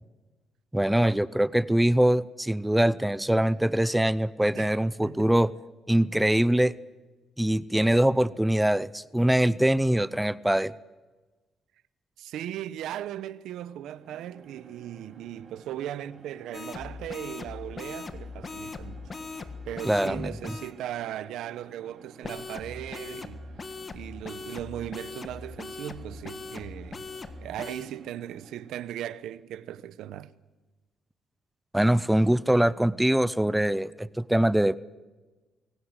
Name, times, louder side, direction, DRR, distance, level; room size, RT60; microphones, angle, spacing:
voice 1, 0.7-5.5 5.9-6.7 7.4-10.7 19.8-20.6 31.7-34.8, right 1 dB, 5° right, 0.6 m, -23 dB
voice 2, 5.0-5.3 12.2-19.0 19.6-23.4 23.9-27.1 27.4-30.3, right 11 dB, 85° right, 0.9 m, -38 dB
sound 1, 13.7-29.0, right 5 dB, 50° right, 3.1 m, -53 dB
sound 2, 16.5-20.7 22.2-27.9, left 4 dB, 35° left, 1.6 m, -40 dB
24.0 x 17.5 x 8.2 m
cardioid pair, 90°, 0 cm